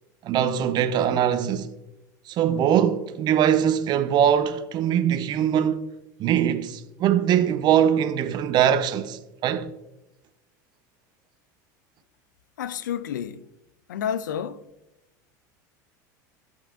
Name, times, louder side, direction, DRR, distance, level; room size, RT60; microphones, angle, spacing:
voice 1, 0.2-1.7 2.3-5.8 6.2-9.7, right 9 dB, 45° right, 0.7 m, -22 dB
voice 2, 12.6-13.5 13.9-14.6, left 9 dB, 90° left, 0.4 m, -30 dB
14.0 x 5.5 x 2.5 m
hypercardioid pair, 95°, 10 cm